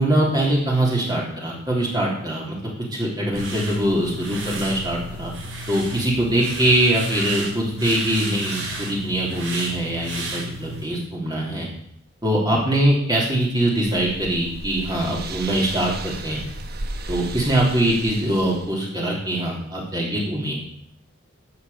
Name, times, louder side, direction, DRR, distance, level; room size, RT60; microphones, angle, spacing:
voice 1, 0.0-2.5 2.9-5.3 5.7-11.7 12.2-16.4 17.1-20.6, right 1 dB, 20° right, -4 dB, 3.3 m, -22 dB
sound 1, 3.3-10.8, right 2 dB, 80° right, 5.2 m, -33 dB
sound 2, 13.4-18.8, right 2 dB, 50° right, 1.1 m, -34 dB
12.5 x 8.0 x 6.8 m, 0.66 s
head